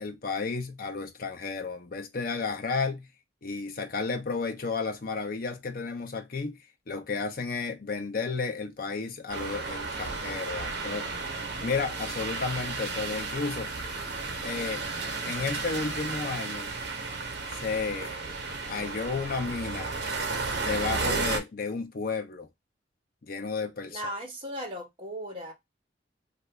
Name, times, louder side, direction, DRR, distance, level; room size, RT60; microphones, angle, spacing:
voice 1, 0.0-3.1 3.4-6.6 6.9-11.1 11.6-13.7 14.4-14.8 15.2-16.7 17.5-18.2 18.7-19.9 20.6-22.5 23.2-24.0, left 4 dB, 50° left, 0.6 m, -32 dB
sound 1, 9.3-21.4, right 3 dB, 70° right, 1.0 m, -33 dB
voice 2, 23.9-25.5, equal, 30° right, 1.1 m, -37 dB
2.6 x 2.5 x 3.2 m
head